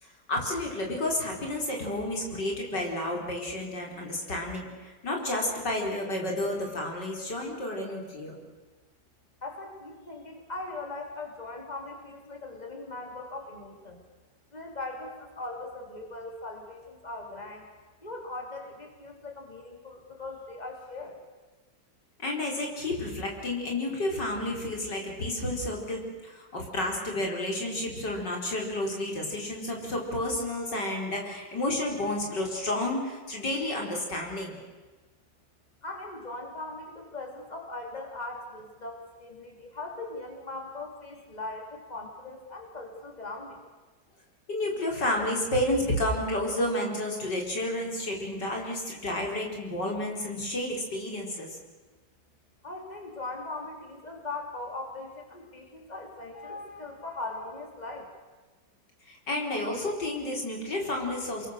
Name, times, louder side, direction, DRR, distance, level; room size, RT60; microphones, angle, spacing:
voice 1, 0.0-8.4 22.2-34.6 44.5-51.5 59.1-61.5, left 1 dB, 75° left, 0 dB, 5.2 m, -31 dB
voice 2, 9.4-14.0 14.5-17.7 18.0-21.2 35.8-43.6 52.6-58.1, left 2 dB, 25° left, 2 dB, 3.6 m, -40 dB
28.5 x 22.5 x 6.7 m, 1.3 s
omnidirectional pair, 1.9 m